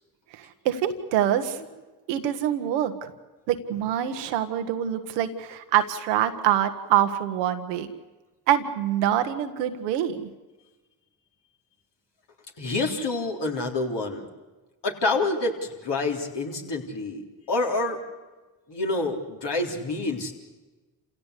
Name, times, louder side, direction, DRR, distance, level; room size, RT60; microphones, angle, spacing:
voice 1, 0.3-1.6 2.1-3.1 3.5-7.9 8.5-10.3, right 11 dB, 85° right, 8 dB, 1.4 m, -25 dB
voice 2, 12.6-14.2 14.8-18.0 18.7-20.3, left 2 dB, 60° left, 2 dB, 4.0 m, -27 dB
28.0 x 16.5 x 8.3 m, 1.2 s
hypercardioid pair, 40°, 48 cm